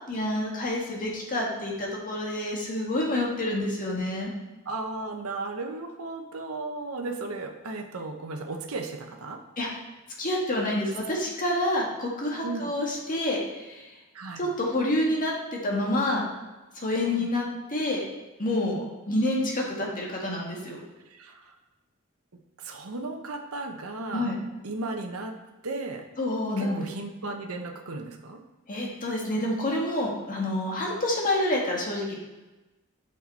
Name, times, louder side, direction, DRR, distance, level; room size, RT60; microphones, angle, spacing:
voice 1, 0.1-4.3 9.6-9.7 10.2-13.8 14.4-16.2 16.8-18.0 18.4-20.8 24.1-24.4 26.2-26.9 28.7-32.2, left 1 dB, 40° left, -2 dB, 1.7 m, -28 dB
voice 2, 4.7-9.4 12.4-12.7 14.1-14.5 17.0-17.3 21.1-21.5 22.6-24.3 24.6-25.3 25.6-26.0 26.6-28.4, right 3 dB, 75° right, 4 dB, 1.0 m, -35 dB
8.6 x 6.0 x 4.2 m, 1.1 s
head